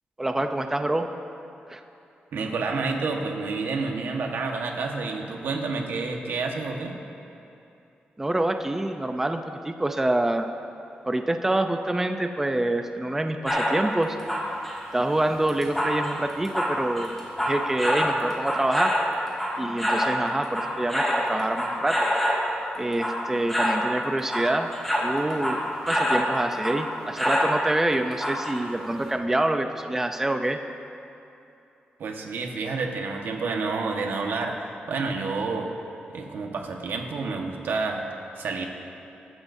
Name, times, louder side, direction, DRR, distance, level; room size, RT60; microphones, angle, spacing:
voice 1, 0.2-1.1 1.7-1.8 8.2-10.5 11.0-14.2 14.9-17.1 17.5-19.0 19.6-22.1 22.8-24.7 25.0-25.6 25.9-30.6, right 1 dB, 10° right, 6 dB, 0.5 m, -26 dB
voice 2, 2.3-7.0 32.0-34.6 34.9-35.7 36.1-38.1 38.4-38.7, right 4 dB, 85° right, 2 dB, 1.4 m, -29 dB
sound 1, 13.5-13.8 14.2-20.2 20.4-22.5 22.9-23.2 23.5-23.9 24.2-26.3 26.6-26.8 27.2-27.6 28.2-28.6 29.0-29.1, equal, 5° left, 3.2 m, -26 dB
23.0 x 12.5 x 2.7 m, 2.8 s
wide cardioid pair, 140°, 3 cm